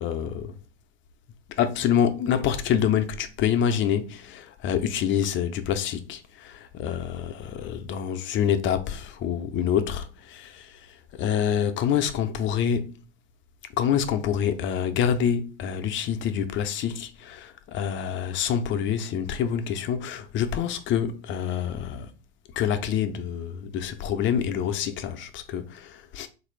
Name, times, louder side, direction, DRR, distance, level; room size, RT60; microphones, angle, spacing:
voice 1, 0.0-0.6 1.6-12.9 13.8-22.1 22.5-26.3, left 8 dB, 40° left, 0.5 m, -27 dB
3.5 x 2.6 x 3.1 m
hypercardioid pair, 95°, 32 cm